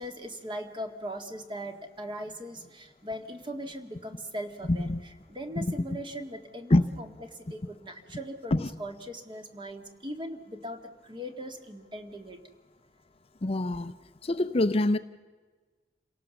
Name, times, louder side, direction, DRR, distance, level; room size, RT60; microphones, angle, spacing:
voice 1, 0.0-4.9 5.3-12.4, equal, 30° right, 1.8 m, -39 dB
voice 2, 4.7-5.0 5.6-5.7 6.7-6.8 8.5-8.7 13.4-13.9 14.2-15.0, left 2 dB, 35° left, 0.6 m, -24 dB
28.0 x 18.0 x 7.1 m
head